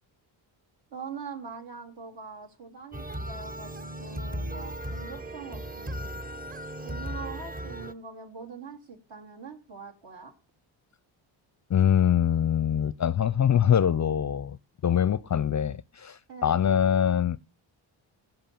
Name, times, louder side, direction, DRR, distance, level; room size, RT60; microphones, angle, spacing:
voice 1, 0.9-6.2 6.8-10.3 16.3-16.6, right 5 dB, 60° right, 3.4 m, -43 dB
sound 1, 2.9-7.9, equal, 15° right, 0.9 m, -36 dB
voice 2, 11.7-14.6 14.8-17.4, left 9 dB, 35° left, 0.5 m, -24 dB
16.5 x 5.5 x 7.0 m
cardioid pair, 75°, 50 cm